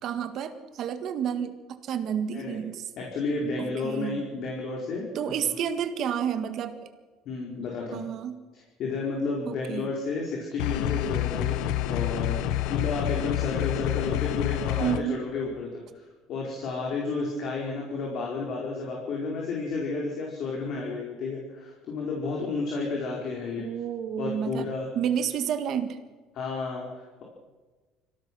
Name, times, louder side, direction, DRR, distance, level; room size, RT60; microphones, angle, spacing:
voice 1, 0.0-2.9 3.6-4.3 5.1-6.9 7.9-8.4 9.5-9.9 14.8-15.2 23.6-26.0, right 8 dB, 50° right, 9 dB, 1.7 m, -30 dB
voice 2, 3.0-5.3 7.2-8.1 8.5-11.6 11.9-15.8 16.3-23.7 24.2-24.8 25.2-25.3 26.4-27.2, left 3 dB, 50° left, -2 dB, 4.7 m, -32 dB
sound 1, 10.6-15.0, left 12 dB, 75° left, 1.0 m, -28 dB
25.5 x 17.0 x 6.3 m, 1.3 s
cardioid pair, 155°, 0 cm